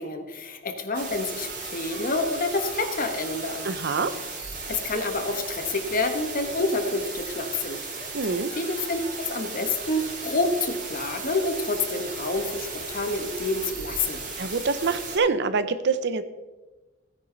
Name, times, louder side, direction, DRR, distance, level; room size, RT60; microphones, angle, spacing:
voice 1, 0.0-3.7 4.7-7.8 8.2-14.2, left 2 dB, 45° left, 6 dB, 1.4 m, -28 dB
sound 1, 0.9-15.2, right 3 dB, 40° right, 3.5 m, -36 dB
voice 2, 3.6-4.1 8.1-8.5 14.4-16.2, right 4 dB, 60° right, 12 dB, 0.7 m, -25 dB
16.0 x 9.9 x 4.0 m, 1.2 s
head